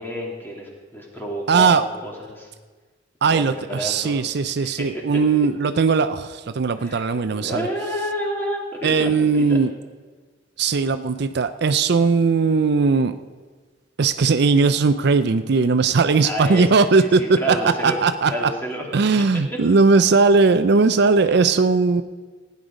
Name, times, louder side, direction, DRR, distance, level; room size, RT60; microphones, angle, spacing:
voice 1, 0.0-2.5 3.2-4.2 4.6-5.0 6.8-9.6 16.2-16.6 17.0-18.9 21.2-21.4, equal, 10° left, -2 dB, 2.6 m, -30 dB
voice 2, 1.5-1.8 3.2-7.7 8.8-9.7 10.6-13.1 14.0-17.2 17.5-17.6 17.8-18.5 18.9-22.0, right 4 dB, 65° right, 11 dB, 0.5 m, -18 dB
16.0 x 9.6 x 5.1 m, 1.4 s
head